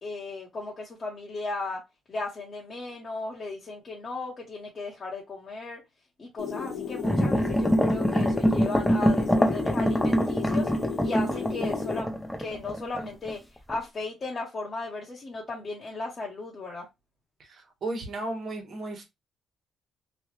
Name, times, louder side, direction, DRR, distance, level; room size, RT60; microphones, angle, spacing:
voice 1, 0.0-1.8 2.1-5.8 6.2-10.7 11.0-12.1 12.4-13.4 13.7-16.9, left 3 dB, 40° left, 1.0 m, -36 dB
sound 1, 6.4-12.0, left 7 dB, 90° left, 1.0 m, -35 dB
sound 2, 7.0-13.3 13.7-13.8, equal, 5° left, 0.7 m, -25 dB
voice 2, 17.5-19.0, right 2 dB, 60° right, 1.3 m, -34 dB
3.1 x 2.3 x 3.1 m
cardioid pair, 90°, 0 cm